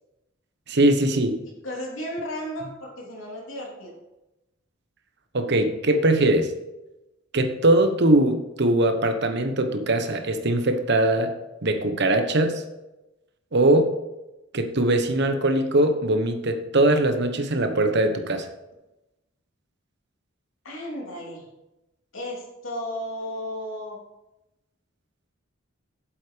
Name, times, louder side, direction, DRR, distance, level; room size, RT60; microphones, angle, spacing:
voice 1, 0.7-1.4 5.3-6.5 7.3-11.3 11.6-12.6 13.5-13.9 14.5-18.5, right 1 dB, 60° right, 7 dB, 1.1 m, -21 dB
voice 2, 1.6-3.9 20.6-21.5 22.1-24.0, equal, 80° left, -1 dB, 2.9 m, -34 dB
8.3 x 7.6 x 5.1 m, 0.97 s
head